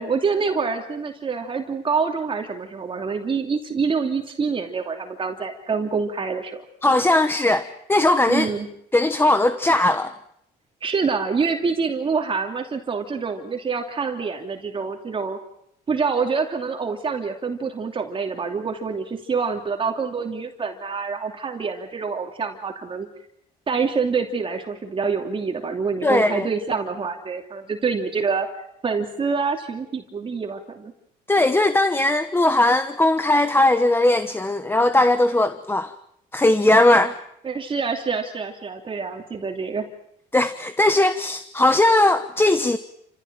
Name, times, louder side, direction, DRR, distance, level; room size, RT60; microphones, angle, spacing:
voice 1, 0.0-6.6 8.3-8.7 10.8-15.4 15.9-23.1 23.7-28.5 28.8-30.9 37.4-39.8, right 5 dB, 30° right, 3 dB, 2.9 m, -26 dB
voice 2, 6.8-8.5 8.9-10.1 26.0-26.5 31.3-35.9 36.3-37.1 40.3-42.8, left 2 dB, 15° left, 10 dB, 1.2 m, -19 dB
29.0 x 16.0 x 9.1 m, 0.74 s
cardioid pair, 110°, 17 cm